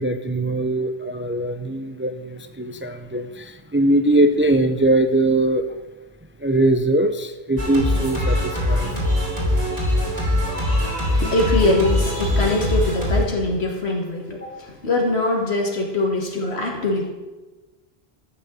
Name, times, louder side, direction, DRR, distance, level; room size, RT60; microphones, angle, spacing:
voice 1, 0.0-5.6 6.4-9.0, right 1 dB, 15° right, 8 dB, 0.4 m, -21 dB
Singing, 7.6-13.2, left 1 dB, 35° right, 3.2 m, -22 dB
voice 2, 11.2-17.1, left 2 dB, 80° left, 0 dB, 2.2 m, -22 dB
12.5 x 6.5 x 7.9 m, 1.2 s
omnidirectional pair, 1.1 m